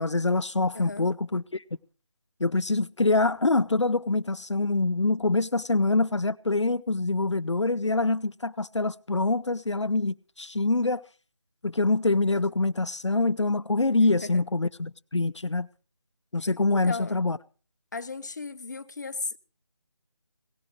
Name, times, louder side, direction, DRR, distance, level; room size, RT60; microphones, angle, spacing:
voice 1, 0.0-1.6 2.4-11.0 11.6-15.7 16.3-17.4, left 3 dB, 75° left, 0.7 m, -25 dB
voice 2, 0.7-1.1 14.0-14.4 16.7-17.2 17.9-19.4, left 4 dB, 40° left, 0.8 m, -36 dB
18.0 x 16.5 x 3.1 m
figure-of-eight pair, 160°, 15 cm